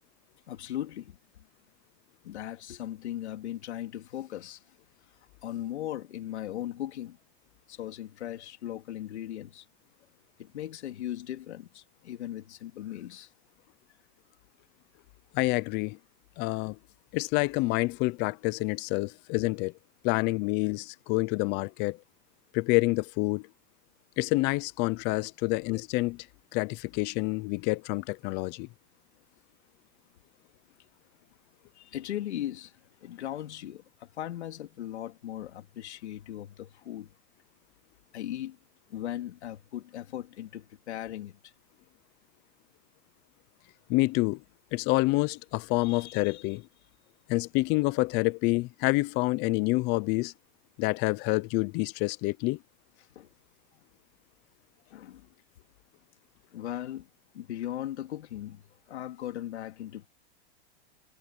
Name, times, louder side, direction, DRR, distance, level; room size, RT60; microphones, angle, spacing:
voice 1, 0.5-1.2 2.2-4.6 5.4-7.2 7.7-9.6 10.4-13.3 31.7-37.1 38.1-38.6 38.9-41.5 45.8-46.4 53.1-53.3 54.9-55.3 56.5-57.1 57.3-60.1, left 12 dB, 90° left, 3.4 m, -38 dB
voice 2, 15.3-16.0 16.4-16.8 17.1-19.7 20.0-22.0 22.5-23.5 24.2-26.3 26.5-28.7 43.9-44.4 44.7-46.6 47.3-50.3 50.8-52.6, left 23 dB, 30° left, 0.7 m, -27 dB
supercardioid pair, 155°, 33 cm